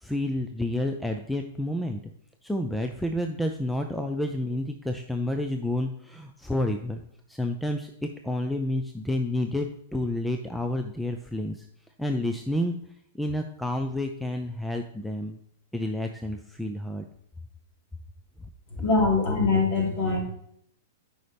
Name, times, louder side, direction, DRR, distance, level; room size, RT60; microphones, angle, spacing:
voice 1, 0.0-2.0 2.4-7.0 7.3-11.7 12.0-12.8 13.1-15.4 15.7-17.1, left 1 dB, ahead, 4 dB, 0.4 m, -30 dB
voice 2, 18.8-20.2, left 3 dB, 40° left, -1 dB, 2.9 m, -23 dB
8.8 x 5.4 x 3.4 m, 0.70 s
supercardioid pair, 155°, 0 cm